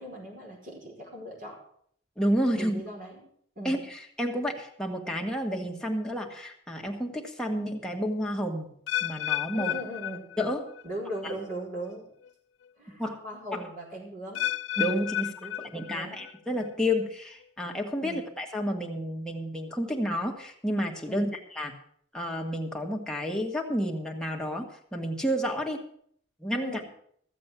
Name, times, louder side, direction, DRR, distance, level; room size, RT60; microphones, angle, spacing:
voice 1, 0.0-1.6 2.5-3.2 3.5-3.8 9.5-10.2 10.8-12.1 12.8-14.4 15.1-16.2 18.0-18.2 21.1-21.3 26.6-26.8, right 1 dB, 45° right, -1 dB, 5.0 m, -39 dB
voice 2, 2.2-2.8 3.6-8.7 9.0-9.7 10.4-10.7 13.0-13.2 13.5-13.7 14.8-15.3 15.7-21.3 21.5-21.7 22.1-25.8 26.4-26.8, equal, 5° left, 0 dB, 1.6 m, -30 dB
sound 1, 8.9-10.9 11.1-11.6 12.2-12.3 14.3-16.3 16.6-17.1 17.7-17.8, left 12 dB, 75° left, 0.5 m, -32 dB
15.0 x 7.6 x 7.3 m, 0.64 s
head